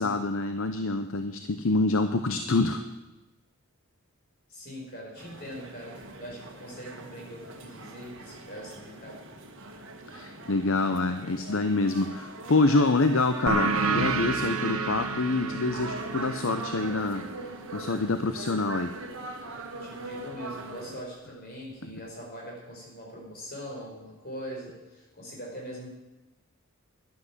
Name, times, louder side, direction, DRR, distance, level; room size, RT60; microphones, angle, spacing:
voice 1, 0.0-2.8 10.1-17.2 17.7-18.9, left 3 dB, 60° left, 8 dB, 0.7 m, -26 dB
voice 2, 4.5-9.2 19.8-25.9, equal, 45° left, -2 dB, 4.9 m, -42 dB
sound 1, 5.2-21.0, right 2 dB, 55° right, 1.6 m, -42 dB
sound 2, 13.5-18.6, right 4 dB, 70° right, 1.2 m, -31 dB
11.5 x 10.0 x 7.3 m, 1.0 s
head